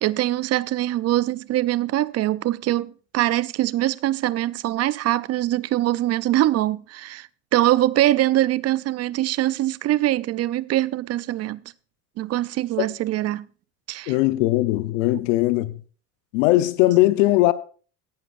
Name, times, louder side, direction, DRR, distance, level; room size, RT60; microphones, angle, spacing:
voice 1, 0.0-11.6 12.2-13.5 13.9-14.1, right 15 dB, 40° right, 0.5 m, -23 dB
voice 2, 14.1-15.8 16.3-17.5, left 17 dB, 80° left, 0.8 m, -19 dB
16.5 x 11.0 x 2.5 m
supercardioid pair, 95°, 39 cm